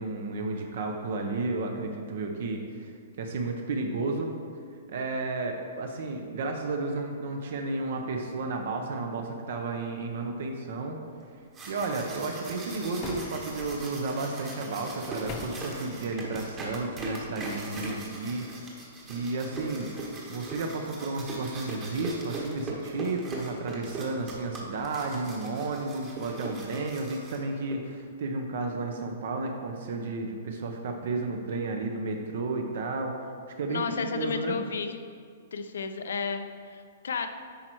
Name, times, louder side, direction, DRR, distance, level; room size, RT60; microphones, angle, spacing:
voice 1, 0.0-4.3 4.9-11.0 11.7-18.4 19.1-19.9 20.3-34.6, right 3 dB, 55° right, 3 dB, 0.7 m, -32 dB
sound 1, 11.3-27.7, right 2 dB, 15° right, 1.1 m, -39 dB
sound 2, 13.0-13.7 15.3-15.8, left 4 dB, 25° left, 0.6 m, -39 dB
voice 2, 33.7-34.9 35.5-37.3, left 6 dB, 90° left, 7 dB, 0.7 m, -32 dB
10.0 x 4.4 x 4.6 m, 2.2 s
hypercardioid pair, 170°, 0 cm